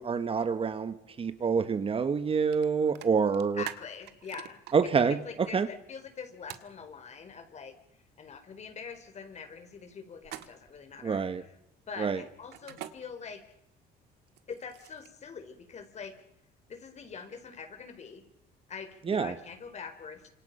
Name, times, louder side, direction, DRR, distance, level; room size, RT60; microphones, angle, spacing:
voice 1, 0.0-3.6 4.7-5.2 5.5-5.7 11.0-11.4 12.0-12.2 19.1-19.3, right 5 dB, 35° right, 11 dB, 1.4 m, -27 dB
sound 1, 2.5-2.6 2.9-4.7 6.5-6.7 10.2-10.8 12.5-12.9 14.3-15.2, right 13 dB, 75° right, 1.8 m, -43 dB
voice 2, 3.5-7.7 8.2-11.6 11.9-13.4 14.5-16.1 16.7-18.2 18.7-20.2, left 6 dB, 40° left, 8 dB, 4.7 m, -44 dB
29.0 x 27.0 x 5.7 m, 0.81 s
cardioid pair, 110°, 17 cm